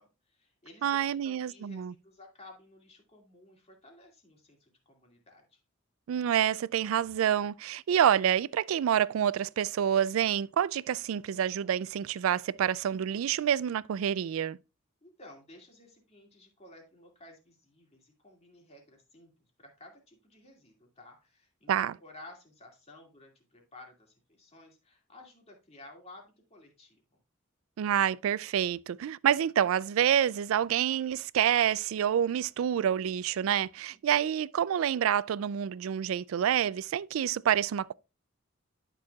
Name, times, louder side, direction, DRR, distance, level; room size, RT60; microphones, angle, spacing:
voice 1, 0.0-5.6 15.0-19.3 19.6-27.0 33.9-34.3, left 2 dB, 30° left, 2.4 m, -54 dB
voice 2, 0.8-1.9 6.1-14.6 21.7-21.9 27.8-37.9, right 9 dB, 75° right, 0.3 m, -27 dB
11.5 x 6.1 x 2.3 m
head